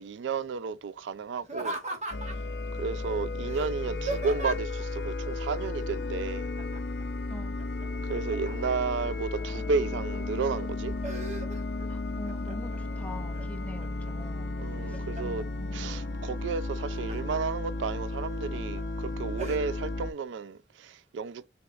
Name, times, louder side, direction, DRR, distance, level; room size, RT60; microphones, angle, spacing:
voice 1, 0.0-1.8 2.7-6.5 8.0-11.0 14.6-15.4 15.7-21.5, right 5 dB, 85° right, 0.3 m, -33 dB
Laughter, 1.4-2.5 3.5-4.8 6.6-7.0 7.4-9.0 9.5-10.2 10.6-11.9 12.2-12.8 13.3-14.1 14.6-15.4 16.6-17.4 17.9-18.0 18.5-18.8 19.4-19.6, right 2 dB, 40° right, 1.4 m, -38 dB
sound 1, 2.1-20.1, left 2 dB, 65° left, 0.5 m, -34 dB
voice 2, 11.9-16.0, left 1 dB, 10° left, 0.7 m, -45 dB
6.3 x 2.9 x 2.4 m
head